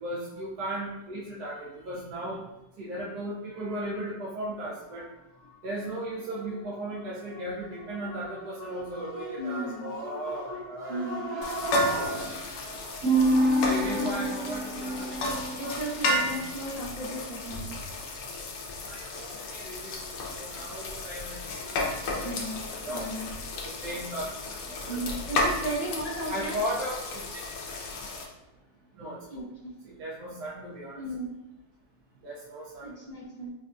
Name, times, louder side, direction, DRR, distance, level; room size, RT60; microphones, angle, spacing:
voice 1, 0.0-2.4 2.8-5.1 5.4-15.6 18.9-19.9 20.3-22.4 22.6-23.1 23.6-24.3 24.7-25.2 26.3-27.2 29.0-29.5 29.8-31.0 32.2-32.9, right 1 dB, 70° right, -7 dB, 1.2 m, -33 dB
voice 2, 9.4-9.9 10.9-11.2 15.5-17.6 22.2-22.6 22.9-23.3 24.9-26.6 29.3-29.8 31.0-31.3 32.8-33.5, right 1 dB, 40° left, -8 dB, 0.5 m, -35 dB
sound 1, 11.4-28.2, left 2 dB, 85° left, 1.3 m, -33 dB
5.2 x 2.3 x 2.5 m, 0.96 s
omnidirectional pair, 1.8 m